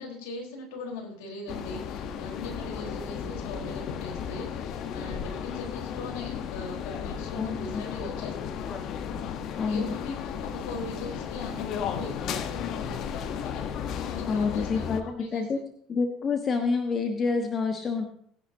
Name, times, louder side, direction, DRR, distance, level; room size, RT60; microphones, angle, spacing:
voice 1, 0.0-8.6 9.6-15.6, left 3 dB, 75° left, 0 dB, 4.2 m, -40 dB
sound 1, 1.5-15.0, left 8 dB, 60° left, 1.1 m, -34 dB
voice 2, 7.4-7.8 8.7-8.8 9.6-10.0 14.3-15.6 15.9-18.1, left 4 dB, 40° left, 5 dB, 1.4 m, -28 dB
20.5 x 10.5 x 2.8 m, 0.63 s
hypercardioid pair, 70°, 0 cm